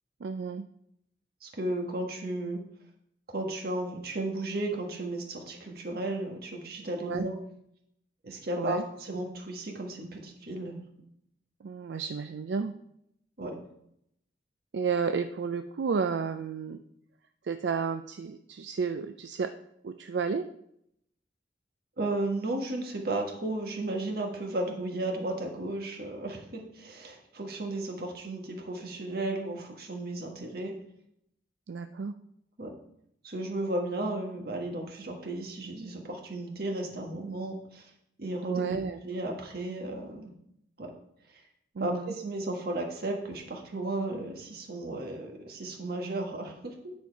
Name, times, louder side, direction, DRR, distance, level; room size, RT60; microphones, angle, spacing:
voice 1, 0.2-0.7 7.0-7.3 8.6-8.8 11.6-12.7 14.7-16.8 17.4-19.5 19.8-20.4 31.7-32.1 38.4-39.0 41.8-42.1, right 5 dB, 80° right, 8 dB, 0.4 m, -32 dB
voice 2, 1.4-2.6 3.3-7.4 8.2-10.8 13.4-13.6 22.0-30.8 32.6-32.8 33.2-37.9 38.2-38.8 39.0-40.3 40.8-40.9 41.3-41.4 41.8-46.9, right 2 dB, 60° right, 2 dB, 1.5 m, -34 dB
9.4 x 4.4 x 4.6 m, 0.75 s
head